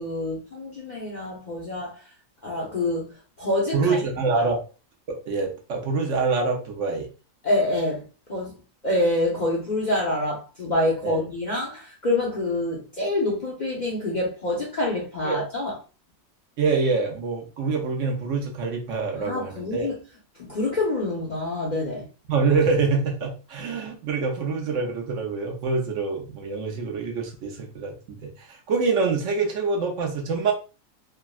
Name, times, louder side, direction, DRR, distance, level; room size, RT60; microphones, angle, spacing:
voice 1, 0.0-2.0 2.4-4.0 7.4-8.0 8.3-8.5 8.8-15.8 19.1-19.9 20.4-22.1, left 1 dB, 50° left, 0.5 m, -26 dB
voice 2, 3.7-4.6 5.1-7.1 11.0-11.2 15.2-15.4 16.6-19.9 22.3-30.5, right 4 dB, 70° right, 0.9 m, -25 dB
3.4 x 2.0 x 2.3 m
omnidirectional pair, 1.5 m